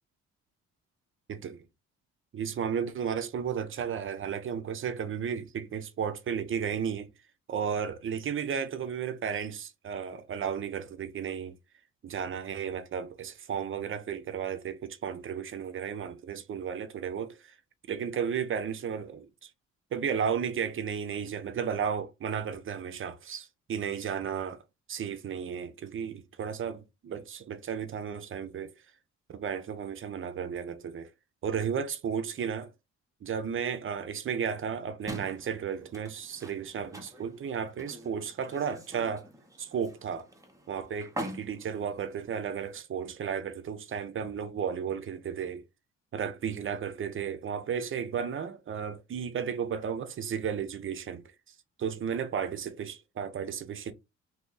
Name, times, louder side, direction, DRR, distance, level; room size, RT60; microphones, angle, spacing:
voice 1, 1.3-1.6 2.3-7.1 7.5-11.6 12.0-17.6 17.9-19.5 19.9-24.6 24.9-28.7 29.3-31.1 31.4-32.7 33.2-39.3 39.6-40.3 40.7-45.6 46.1-51.2 51.8-53.9, right 7 dB, 45° right, 0.6 m, -34 dB
window closing, 35.1-42.8, equal, 10° right, 0.8 m, -45 dB
2.7 x 2.6 x 3.8 m
cardioid pair, 90°, 30 cm